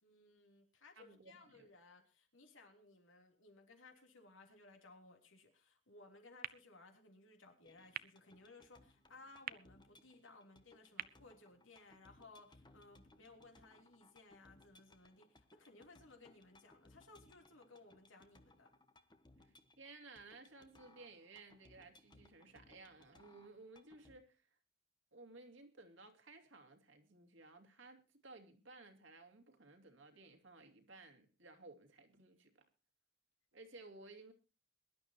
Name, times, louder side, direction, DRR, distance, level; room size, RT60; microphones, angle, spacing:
voice 1, 0.0-18.7, left 3 dB, 75° left, 3.4 m, -61 dB
voice 2, 1.0-1.7 19.4-24.6 25.1-32.7 33.5-34.3, right 3 dB, 70° right, 2.5 m, -58 dB
sound 1, 6.4-12.4, right 10 dB, 50° right, 0.6 m, -53 dB
sound 2, 7.6-24.2, left 2 dB, 25° left, 1.2 m, -67 dB
22.5 x 11.5 x 3.0 m
head